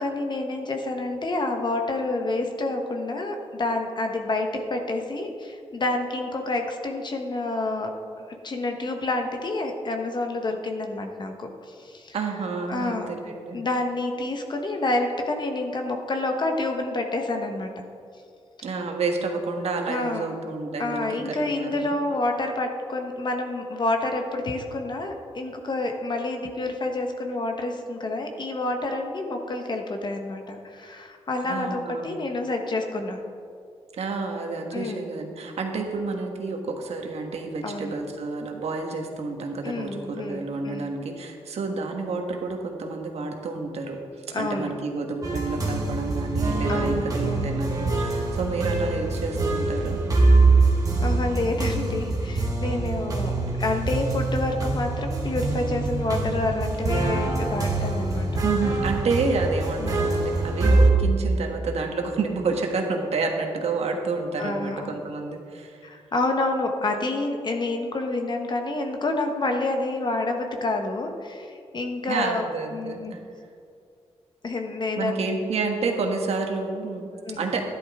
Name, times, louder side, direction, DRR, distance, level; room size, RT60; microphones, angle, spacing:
voice 1, 0.0-12.2 12.7-13.1 13.5-17.9 19.9-20.3 20.8-33.2 34.7-35.1 37.6-37.9 39.6-40.9 44.3-44.7 46.7-47.5 51.0-58.4 59.8-60.0 64.4-65.0 65.8-72.4 72.7-73.1 74.4-75.2 77.3-77.5, left 2 dB, 45° left, 4 dB, 1.2 m, -28 dB
voice 2, 12.1-13.6 18.6-21.9 31.4-32.1 34.0-44.0 44.3-50.0 58.4-65.8 72.1-73.2 74.9-77.1 77.4-77.7, right 4 dB, 75° right, 3 dB, 1.5 m, -29 dB
sound 1, 45.2-60.9, right 2 dB, 35° right, 1.7 m, -24 dB
12.5 x 11.0 x 3.7 m, 2.4 s
cardioid pair, 95°, 11 cm